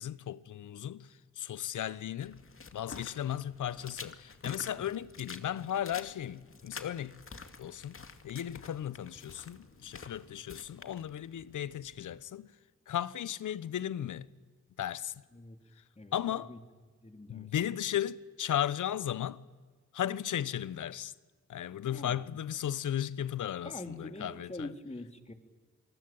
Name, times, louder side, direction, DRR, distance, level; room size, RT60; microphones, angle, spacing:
voice 1, 0.0-2.4 2.7-7.2 7.6-12.5 12.9-14.3 14.8-15.2 15.8-15.9 16.1-16.5 17.3-19.4 19.9-21.1 21.5-24.7, left 10 dB, 70° left, 1.0 m, -35 dB
sound 1, 2.2-12.2, left 4 dB, 40° left, 2.4 m, -49 dB
voice 2, 16.0-16.6 17.0-17.5 21.9-22.3 23.6-25.3, left 2 dB, 20° left, 3.5 m, -45 dB
28.0 x 19.5 x 8.9 m
supercardioid pair, 40°, 32 cm